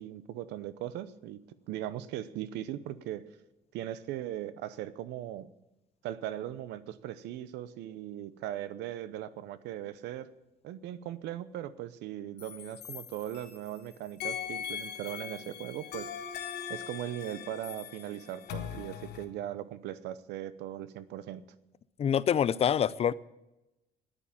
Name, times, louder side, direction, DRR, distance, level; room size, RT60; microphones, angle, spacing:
voice 1, 0.0-3.2 3.7-5.5 6.0-10.3 10.6-16.1 16.7-21.4, right 12 dB, 85° right, 0.8 m, -39 dB
sound 1, 12.4-13.8 14.2-19.3, left 9 dB, 75° left, 1.5 m, -40 dB
voice 2, 22.0-23.1, left 8 dB, 35° left, 0.5 m, -26 dB
10.0 x 9.8 x 8.8 m
cardioid pair, 110°, 17 cm